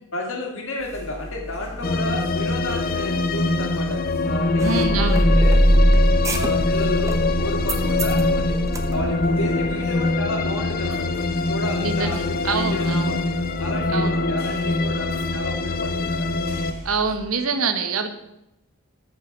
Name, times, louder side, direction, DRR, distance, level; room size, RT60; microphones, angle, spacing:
voice 1, 0.1-4.0 4.3-5.6 6.3-8.6 8.9-13.2 13.6-16.3, left 1 dB, 70° left, 1 dB, 2.2 m, -31 dB
sound 1, 0.8-17.2, left 1 dB, 30° left, 1.6 m, -38 dB
sound 2, 1.8-16.7, left 2 dB, 45° left, 0.5 m, -24 dB
sound 3, 4.6-9.7, equal, 15° right, 0.8 m, -20 dB
voice 2, 4.6-5.2 11.8-13.1 13.9-14.1 16.8-18.1, right 4 dB, 90° right, 8 dB, 1.0 m, -25 dB
8.3 x 5.7 x 6.1 m, 0.87 s
head